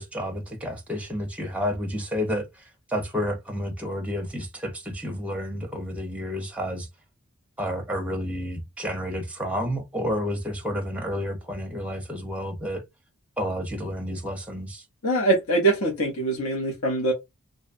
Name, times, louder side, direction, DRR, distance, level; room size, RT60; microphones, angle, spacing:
voice 1, 0.0-2.4 2.9-6.9 7.6-12.8 13.4-14.8, equal, 5° right, 0.6 m, -30 dB
voice 2, 15.0-17.1, right 2 dB, 70° left, 0.7 m, -23 dB
2.6 x 2.1 x 2.5 m
head